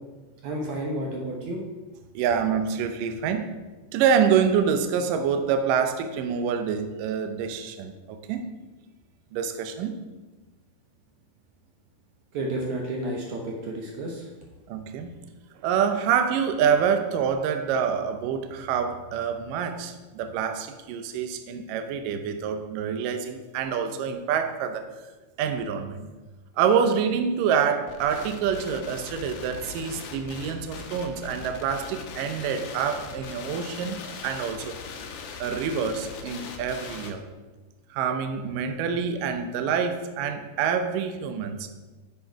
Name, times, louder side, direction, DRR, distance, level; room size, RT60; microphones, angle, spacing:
voice 1, 0.4-1.6 12.3-14.3, right 1 dB, 70° right, 0 dB, 1.8 m, -31 dB
voice 2, 2.1-3.6 3.9-8.5 9.3-9.9 14.7-15.2 15.6-25.1 25.4-26.1 26.6-34.7 35.4-37.2 37.9-41.7, right 7 dB, 85° right, 7 dB, 1.9 m, -26 dB
sound 1, 27.9-37.1, left 5 dB, 70° left, 2.1 m, -40 dB
9.8 x 7.5 x 4.6 m, 1.2 s
omnidirectional pair, 4.9 m